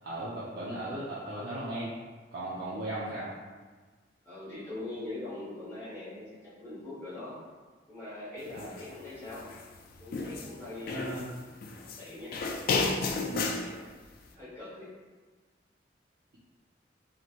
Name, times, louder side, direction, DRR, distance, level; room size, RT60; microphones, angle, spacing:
voice 1, 0.0-1.9 2.3-3.3 8.5-8.7 10.7-11.3 13.3-13.6, right 1 dB, 60° right, -9 dB, 0.6 m, -37 dB
voice 2, 4.2-7.4 7.9-9.5 10.0-10.9 11.8-12.3 13.4-13.8 14.3-14.9, left 2 dB, 15° left, -13 dB, 1.3 m, -42 dB
sound 1, 8.6-8.8 9.3-10.5 10.9-12.0 12.3-13.7, left 3 dB, 50° left, 0.3 m, -32 dB
3.1 x 2.9 x 2.5 m, 1.4 s
head